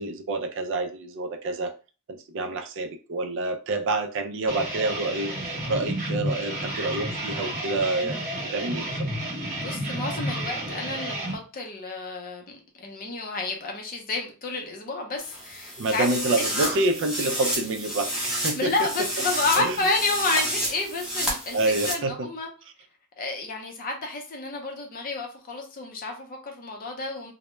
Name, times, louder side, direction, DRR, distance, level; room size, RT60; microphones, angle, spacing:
voice 1, 0.0-1.7 2.1-8.2 8.5-9.1 15.8-18.7 19.5-19.8 21.5-22.3, right 2 dB, 55° right, 0.4 m, -28 dB
sound 1, 4.5-11.3, right 1 dB, 40° right, 0.8 m, -31 dB
voice 2, 9.4-16.5 18.5-22.5 23.2-27.3, left 3 dB, 40° left, 0.6 m, -30 dB
sound 2, 15.2-21.9, equal, 5° right, 0.7 m, -30 dB
2.2 x 2.1 x 3.0 m
head